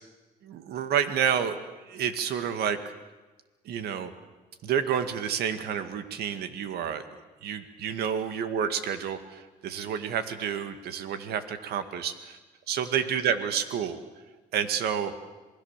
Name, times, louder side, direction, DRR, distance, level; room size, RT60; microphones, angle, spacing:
voice 1, 0.4-1.6 1.9-2.8 3.7-4.1 4.6-7.0 7.4-12.4 12.7-14.0 14.5-15.1, right 8 dB, 70° right, 10 dB, 2.1 m, -29 dB
27.5 x 21.0 x 7.5 m, 1.2 s
cardioid pair, 110°, 17 cm